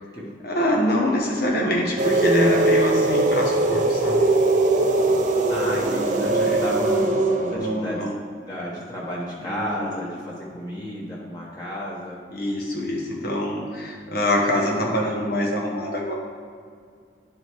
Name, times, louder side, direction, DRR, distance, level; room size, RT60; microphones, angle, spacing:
voice 1, 0.4-4.3 6.5-6.6 7.5-8.1 9.4-10.0 12.3-16.1, left 1 dB, 60° left, -2 dB, 1.2 m, -24 dB
sound 1, 2.0-7.6, right 2 dB, 45° right, 0.7 m, -20 dB
voice 2, 5.5-8.0 8.5-12.2, equal, 25° left, -6 dB, 1.3 m, -32 dB
11.0 x 5.3 x 3.2 m, 2.1 s
head